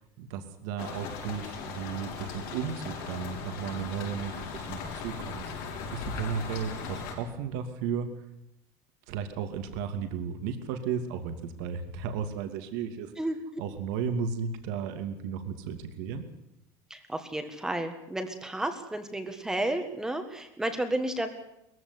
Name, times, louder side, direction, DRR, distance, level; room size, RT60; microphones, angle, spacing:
voice 1, 0.0-8.1 9.1-13.1 13.6-16.2, right 6 dB, 80° right, 6 dB, 2.6 m, -34 dB
sound 1, 0.8-7.1, left 5 dB, 75° left, 6.1 m, -38 dB
voice 2, 16.9-21.3, right 1 dB, 5° right, 7 dB, 1.6 m, -32 dB
21.0 x 15.5 x 9.7 m, 0.84 s
cardioid pair, 165°, 10 cm